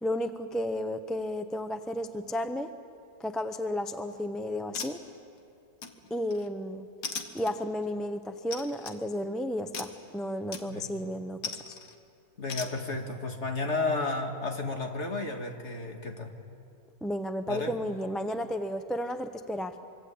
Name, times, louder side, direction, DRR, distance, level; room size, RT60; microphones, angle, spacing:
voice 1, 0.0-2.7 3.2-5.0 6.1-6.9 7.3-11.4 11.7-11.8 17.0-19.7, left 1 dB, ahead, 8 dB, 0.5 m, -33 dB
sound 1, 3.9-4.2 4.7-5.4 5.8-6.5 7.0-7.9 8.5-9.0 9.7-10.0 10.5-10.9 11.4-12.0 12.5-12.7, left 5 dB, 80° left, 2.1 m, -39 dB
voice 2, 10.7-11.0 12.4-16.3 17.5-17.7, left 3 dB, 45° left, 3 dB, 2.5 m, -32 dB
24.5 x 24.0 x 8.6 m, 2.5 s
omnidirectional pair, 1.7 m